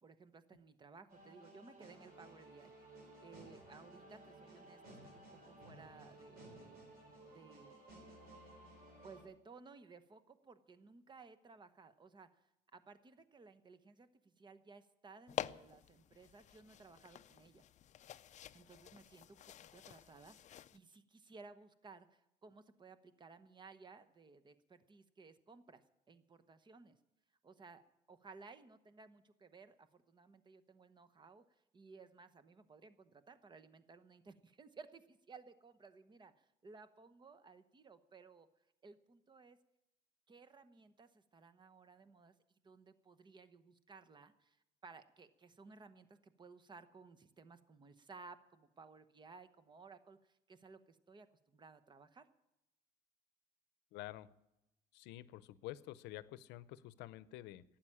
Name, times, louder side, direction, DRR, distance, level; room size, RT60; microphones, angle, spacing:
voice 1, 0.0-2.7 3.2-6.8 7.3-7.8 9.0-17.6 18.5-19.4 19.7-27.0 27.4-27.8 28.1-31.4 31.7-38.5 38.8-39.6 40.3-52.3, right 4 dB, 25° right, 12 dB, 1.0 m, -58 dB
sound 1, 1.1-9.2, right 1 dB, 60° right, 4.5 m, -57 dB
sound 2, 15.3-20.8, left 11 dB, 45° left, 0.4 m, -48 dB
voice 2, 53.9-54.3 54.9-57.6, left 15 dB, 90° left, 17 dB, 0.6 m, -49 dB
12.0 x 8.9 x 10.0 m, 0.89 s
cardioid pair, 110°, 17 cm